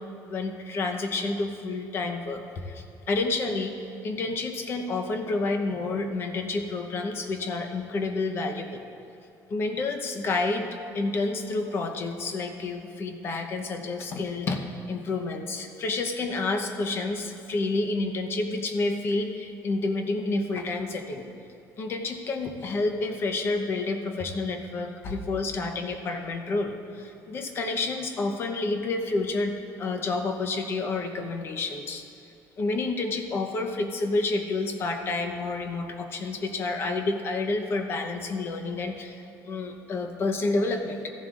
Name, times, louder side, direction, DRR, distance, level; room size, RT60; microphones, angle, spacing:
voice 1, 0.3-3.8 4.0-8.8 9.5-21.3 21.8-29.5 29.8-32.0 32.6-41.1, left 3 dB, 35° left, 5 dB, 0.8 m, -29 dB
15.0 x 11.5 x 2.5 m, 2.5 s
cardioid pair, 160°, 7 cm